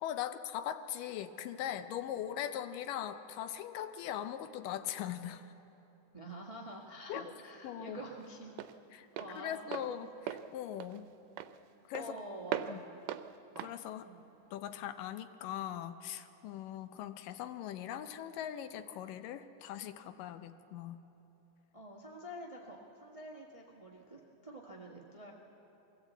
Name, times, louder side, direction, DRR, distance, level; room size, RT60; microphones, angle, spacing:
voice 1, 0.0-5.5 7.1-7.2 7.6-8.0 8.9-9.1 9.4-10.1 10.5-11.1 11.9-12.2 12.7-12.8 13.6-14.1 14.5-21.0, left 11 dB, 85° left, 10 dB, 2.4 m, -40 dB
voice 2, 6.1-8.5 9.1-10.0 11.9-12.9 14.0-14.2 21.7-25.3, right 1 dB, 60° right, -1 dB, 0.3 m, -47 dB
Walk footsteps, 6.3-15.0, right 11 dB, 85° right, 2.2 m, -43 dB
22.5 x 16.0 x 8.2 m, 2.9 s
omnidirectional pair, 3.7 m